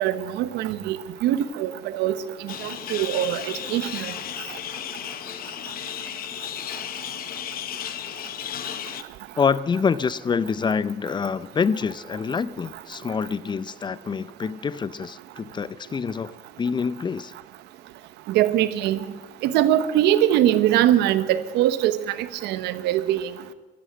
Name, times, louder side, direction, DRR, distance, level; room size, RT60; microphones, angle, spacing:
voice 1, 0.0-4.1 18.3-19.0 19.4-23.3, right 12 dB, 90° right, 0.9 m, -22 dB
sound 1, 2.5-9.0, left 10 dB, 60° left, 1.0 m, -34 dB
voice 2, 9.4-17.3, left 6 dB, 25° left, 0.5 m, -26 dB
16.0 x 11.5 x 7.7 m
cardioid pair, 110°, 17 cm